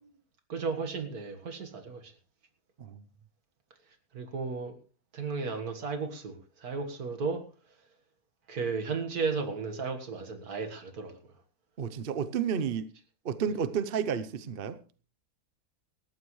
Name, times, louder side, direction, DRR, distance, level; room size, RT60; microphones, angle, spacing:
voice 1, 0.5-2.1 4.1-4.7 5.1-7.4 8.5-11.2, right 4 dB, 75° right, 6 dB, 2.1 m, -34 dB
voice 2, 11.8-12.9 13.2-14.8, right 7 dB, 45° right, 12 dB, 0.8 m, -31 dB
18.5 x 14.0 x 3.2 m, 0.37 s
omnidirectional pair, 1.6 m